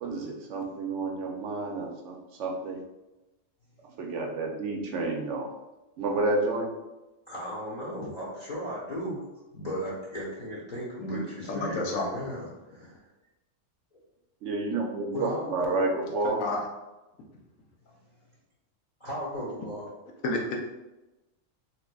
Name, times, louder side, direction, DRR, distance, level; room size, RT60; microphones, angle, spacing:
voice 1, 0.0-2.8 4.0-5.5 6.0-6.7 14.4-16.4, right 2 dB, 70° right, 1 dB, 0.9 m, -30 dB
voice 2, 7.3-9.2 9.5-13.0 15.1-15.8 19.0-19.9, equal, 40° left, -7 dB, 0.9 m, -36 dB
voice 3, 11.0-12.1 16.2-16.6 20.2-20.6, left 2 dB, 80° left, 0 dB, 1.1 m, -31 dB
3.6 x 3.2 x 2.3 m, 1.0 s
omnidirectional pair, 1.3 m